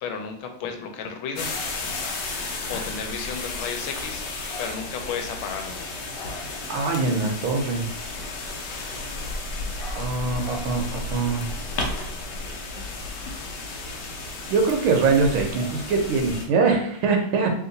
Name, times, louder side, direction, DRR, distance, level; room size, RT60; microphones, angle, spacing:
voice 1, 0.0-1.5 2.7-4.2 4.6-5.8, left 6 dB, 90° left, 4 dB, 1.5 m, -33 dB
sound 1, 1.4-16.5, left 2 dB, 65° left, 1.2 m, -33 dB
voice 2, 6.7-7.8 9.9-11.5 14.5-17.5, right 4 dB, 85° right, 3 dB, 1.6 m, -23 dB
3.6 x 3.0 x 3.9 m, 0.68 s
omnidirectional pair, 2.3 m